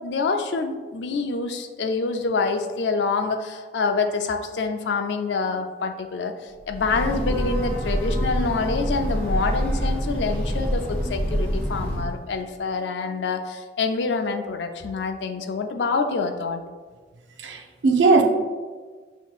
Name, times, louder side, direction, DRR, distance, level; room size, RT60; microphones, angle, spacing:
voice 1, 0.0-16.6, left 4 dB, 75° left, 6 dB, 0.4 m, -26 dB
Breathing / Train, 6.6-12.2, equal, 10° left, 1.1 m, -26 dB
voice 2, 17.4-18.2, right 3 dB, 85° right, 4 dB, 0.5 m, -18 dB
6.1 x 2.9 x 2.4 m, 1.4 s
head